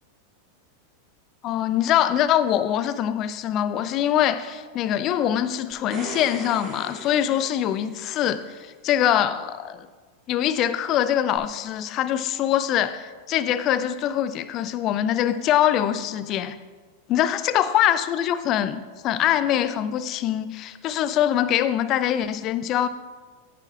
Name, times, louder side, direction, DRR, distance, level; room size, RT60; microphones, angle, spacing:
voice 1, 1.4-9.9 10.3-16.6 17.1-22.9, left 11 dB, 35° left, 13 dB, 0.5 m, -23 dB
sound 1, 5.7-8.3 11.3-11.4, right 1 dB, 15° right, 3.6 m, -38 dB
16.5 x 9.5 x 2.4 m, 1.4 s
figure-of-eight pair, 90°, 0 cm